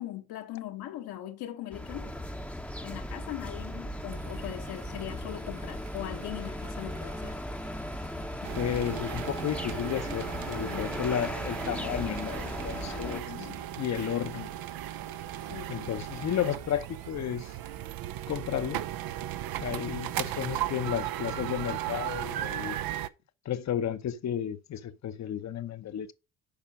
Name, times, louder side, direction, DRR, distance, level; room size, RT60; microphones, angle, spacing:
voice 1, 0.0-2.2 2.8-7.4 10.7-11.3 12.6-13.7 15.5-15.9, left 13 dB, 75° left, 1.4 m, -41 dB
sound 1, 1.7-13.2, left 1 dB, 5° left, 0.8 m, -37 dB
sound 2, 4.1-17.1, right 4 dB, 40° right, 1.3 m, -50 dB
sound 3, 8.4-23.1, right 12 dB, 65° right, 0.7 m, -36 dB
voice 2, 8.6-13.5 13.8-14.5 15.7-17.5 18.3-18.8 19.6-22.8 23.4-26.1, left 9 dB, 45° left, 0.8 m, -33 dB
7.2 x 5.0 x 5.1 m
supercardioid pair, 70°, 38 cm